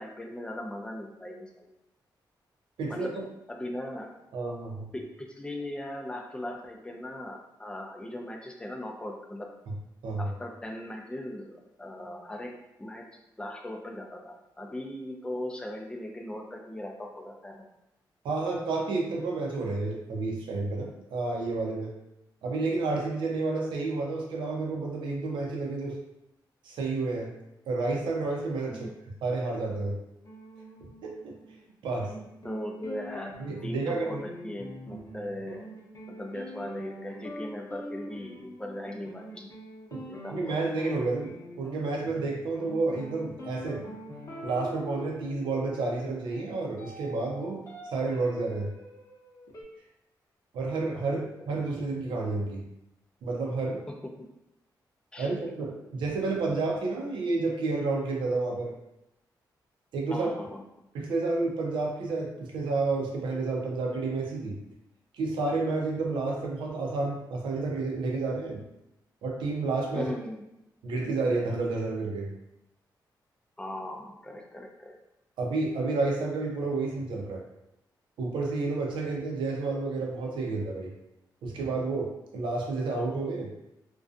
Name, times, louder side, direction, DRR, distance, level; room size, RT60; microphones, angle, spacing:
voice 1, 0.0-1.7 2.9-3.1 3.5-4.1 4.9-9.5 10.2-12.5 12.8-17.7 28.7-29.0 32.4-33.4 33.6-35.7 36.1-39.5 40.0-40.7 51.1-51.5 55.1-55.3 60.1-60.6 69.9-70.5 73.6-75.0, left 1 dB, 10° left, 1 dB, 0.4 m, -39 dB
voice 2, 2.8-3.2 4.3-4.9 10.0-10.3 18.2-21.9 22.4-25.9 26.6-27.3 27.7-28.9 29.2-30.0 31.0-31.3 31.8-32.1 33.4-34.2 39.9-40.0 40.3-43.8 44.4-47.6 47.9-48.7 50.5-52.7 53.2-53.8 55.2-58.7 59.9-60.3 60.9-64.6 65.2-68.6 69.2-70.1 70.8-72.3 75.4-77.4 78.2-80.9 81.4-83.5, right 3 dB, 85° right, -1 dB, 0.5 m, -30 dB
sound 1, 30.2-31.7 32.0-49.6, equal, 45° left, 0.7 m, -44 dB
2.5 x 2.2 x 2.4 m, 0.86 s
cardioid pair, 75°, 8 cm